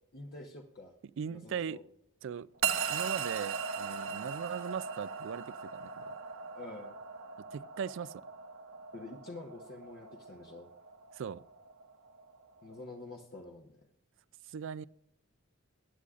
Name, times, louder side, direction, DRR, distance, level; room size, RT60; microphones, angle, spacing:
voice 1, 0.1-0.9 1.3-1.8 4.1-4.3 6.5-7.0 8.9-10.7 12.6-13.8, left 2 dB, 50° left, 1.1 m, -47 dB
voice 2, 1.2-1.8 2.2-2.5 2.9-6.1 7.5-8.2 11.2-11.4 14.5-14.9, right 7 dB, 65° right, 0.3 m, -39 dB
sound 1, 2.6-13.0, right 6 dB, 80° right, 1.3 m, -39 dB
21.5 x 9.9 x 2.5 m
head